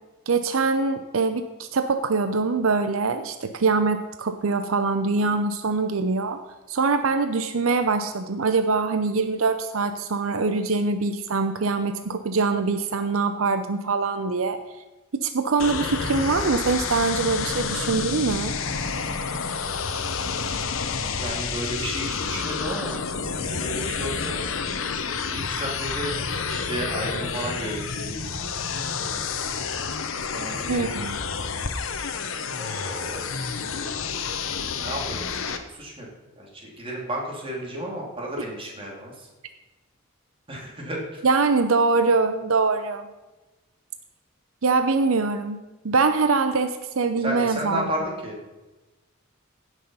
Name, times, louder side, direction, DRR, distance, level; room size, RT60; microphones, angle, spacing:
voice 1, 0.3-6.4 6.7-14.6 15.1-18.5 30.7-31.2 38.4-38.5 41.2-43.1 44.6-45.6 45.8-47.8, right 4 dB, 80° right, 9 dB, 0.7 m, -23 dB
sound 1, 15.6-35.6, left 5 dB, 75° left, 1.0 m, -29 dB
voice 2, 21.2-24.4 25.1-28.3 30.3-31.0 32.6-33.3 33.6-33.9 34.8-36.1 36.3-39.3 40.5-41.2 47.2-48.4, right 1 dB, 25° right, -2 dB, 3.0 m, -33 dB
16.0 x 6.3 x 5.5 m, 1.1 s
head